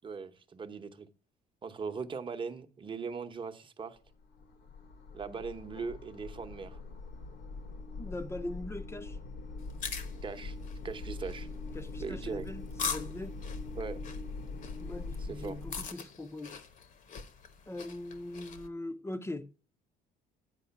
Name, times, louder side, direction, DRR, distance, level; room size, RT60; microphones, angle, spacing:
voice 1, 0.0-1.1 1.6-4.0 5.1-6.8 10.2-11.5 12.0-12.5 13.7-14.0 15.3-15.5, right 5 dB, 30° right, 0.9 m, -39 dB
sound 1, 4.1-15.9, left 3 dB, 75° left, 1.4 m, -42 dB
voice 2, 8.0-9.2 11.7-13.4 14.8-16.6 17.7-19.5, left 1 dB, 15° left, 0.6 m, -41 dB
sound 2, 9.6-18.7, left 6 dB, 50° left, 1.0 m, -43 dB
9.1 x 4.9 x 5.8 m
cardioid pair, 110°, 17 cm